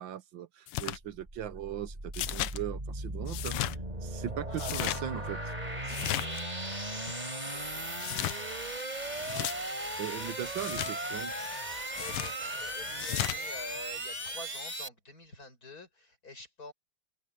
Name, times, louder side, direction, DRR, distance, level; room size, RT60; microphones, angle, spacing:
voice 1, 0.0-3.5 4.0-5.5 10.0-11.3, right 10 dB, 65° right, 1.6 m, -39 dB
sound 1, 0.7-1.0 2.1-2.6 3.3-3.7 4.5-5.0 5.9-6.4 8.0-8.4 9.2-9.5 10.6-10.9 12.0-12.3 13.0-13.4, left 15 dB, 85° left, 1.7 m, -34 dB
sound 2, 0.9-14.9, right 1 dB, 20° right, 4.9 m, -37 dB
voice 2, 4.5-8.7 11.7-16.7, left 2 dB, 40° left, 6.5 m, -49 dB
omnidirectional pair, 2.4 m